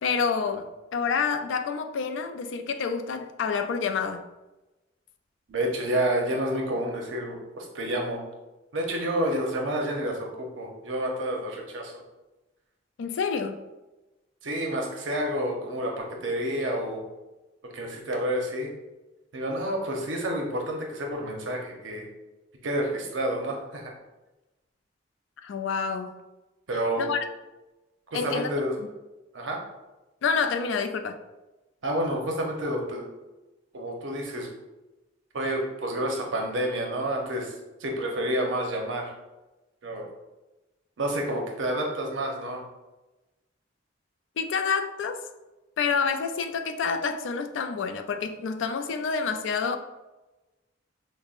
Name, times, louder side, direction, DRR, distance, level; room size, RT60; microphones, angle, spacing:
voice 1, 0.0-4.2 13.0-13.6 25.4-26.1 27.0-27.2 28.1-28.5 30.2-31.2 44.4-45.2 45.8-49.8, left 5 dB, 80° left, 0.3 m, -28 dB
voice 2, 5.5-8.2 8.7-11.9 14.4-17.0 17.7-18.7 19.3-22.0 22.6-23.9 26.7-27.1 28.1-28.7 29.3-29.6 31.8-33.0 33.7-34.5 35.3-37.5 37.8-39.1 39.8-40.0 41.0-42.6, right 1 dB, 85° right, 0.7 m, -29 dB
5.2 x 2.0 x 2.4 m
head